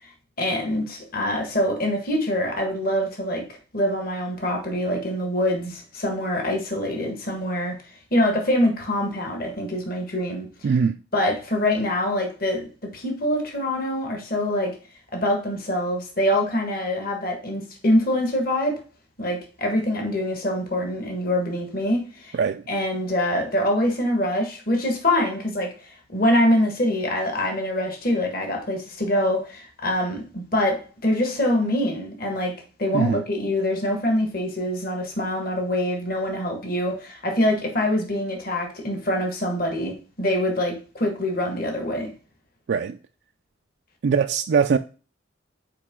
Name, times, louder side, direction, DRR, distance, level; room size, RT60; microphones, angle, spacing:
voice 1, 0.4-3.5 3.7-7.8 8.1-10.5 11.1-12.7 12.9-14.8 15.1-18.8 19.2-22.4 22.7-42.1, left 1 dB, 50° left, 1.6 m, -24 dB
voice 2, 10.6-11.0 22.3-22.6 32.9-33.2 42.7-43.0 44.0-44.8, right 6 dB, 60° right, 0.3 m, -21 dB
6.7 x 4.7 x 3.6 m
head